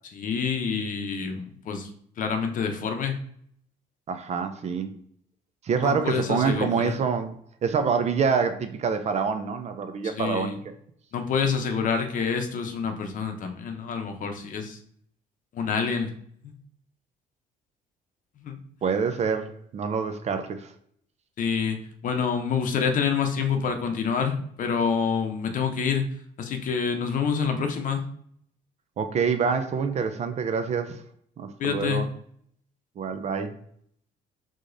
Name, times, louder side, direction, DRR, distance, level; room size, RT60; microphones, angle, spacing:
voice 1, 0.1-1.9 2.2-3.1 5.8-7.0 10.0-10.6 11.1-14.8 15.5-16.1 16.4-16.6 18.4-18.6 21.4-21.8 22.0-26.1 26.4-28.1 31.6-32.0, left 6 dB, 50° left, 5 dB, 0.7 m, -27 dB
voice 2, 4.1-4.9 5.6-7.4 7.6-10.6 18.8-20.7 29.0-31.0 31.4-32.1 33.0-33.6, right 6 dB, 40° right, 8 dB, 0.5 m, -26 dB
4.9 x 3.7 x 2.6 m, 0.64 s
cardioid pair, 110°, 17 cm